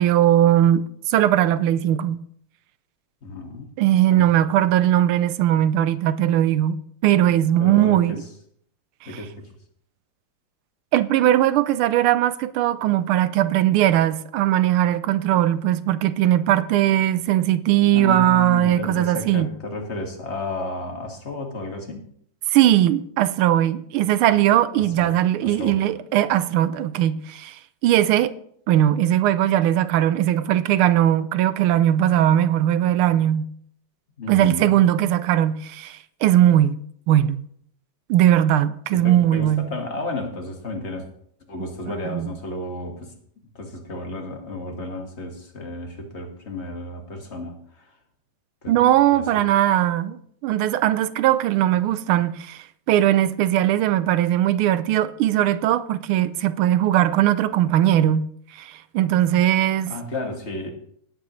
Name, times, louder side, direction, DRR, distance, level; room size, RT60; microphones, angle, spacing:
voice 1, 0.0-2.2 3.8-8.2 9.0-9.1 10.9-19.5 22.5-28.3 28.7-33.5 34.3-36.8 37.1-37.4 38.1-39.7 42.1-42.3 48.7-58.3 58.5-59.9, right 12 dB, 80° right, 1.5 m, -19 dB
voice 2, 3.2-3.7 4.1-4.3 7.6-8.2 9.1-9.5 17.9-22.0 24.8-25.1 25.4-25.8 34.2-34.8 38.9-41.1 41.5-43.1 43.6-48.0 48.6-48.8 49.1-49.4 59.9-60.7, left 2 dB, 30° left, 1.9 m, -32 dB
17.5 x 8.7 x 3.1 m
omnidirectional pair, 2.4 m